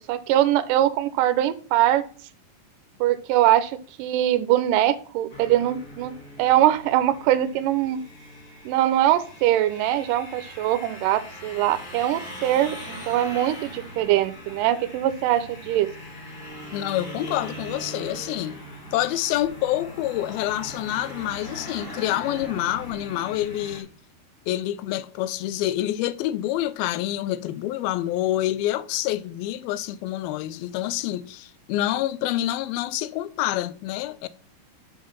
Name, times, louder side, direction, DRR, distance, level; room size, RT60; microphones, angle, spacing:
voice 1, 0.1-2.0 3.0-6.1 6.4-8.0 8.7-15.9, right 13 dB, 80° right, 2.1 m, -22 dB
sound 1, 5.3-23.8, equal, 35° left, 1.7 m, -40 dB
voice 2, 16.7-18.6 18.9-23.9 24.5-34.3, left 14 dB, 90° left, 2.4 m, -27 dB
7.3 x 4.6 x 5.9 m
omnidirectional pair, 4.2 m